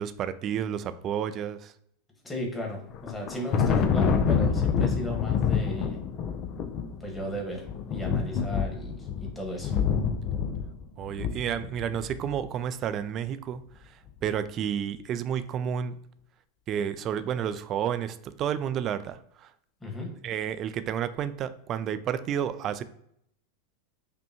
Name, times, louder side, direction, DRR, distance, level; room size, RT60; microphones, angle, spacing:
voice 1, 0.0-1.7 11.0-13.6 14.2-15.9 16.7-19.5 20.2-22.8, right 9 dB, 40° right, 12 dB, 0.4 m, -31 dB
voice 2, 2.2-6.0 7.0-9.7 19.8-20.1, equal, 10° left, 0 dB, 1.4 m, -36 dB
Thunder, 2.9-12.3, left 6 dB, 45° left, 0.5 m, -27 dB
5.4 x 2.2 x 2.9 m, 0.71 s
hypercardioid pair, 110°, 0 cm